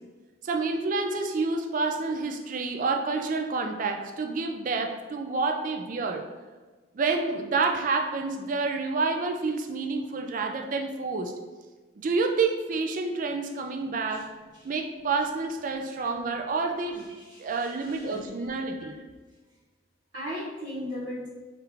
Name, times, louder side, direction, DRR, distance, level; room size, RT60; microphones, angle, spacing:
voice 1, 0.4-6.2 6.9-11.4 12.0-14.3 14.6-17.1 17.4-18.9, right 4 dB, 40° right, 4 dB, 0.3 m, -28 dB
voice 2, 16.6-18.2 18.8-18.9 20.1-21.3, equal, 60° right, -11 dB, 1.0 m, -39 dB
4.6 x 2.4 x 3.3 m, 1.3 s
head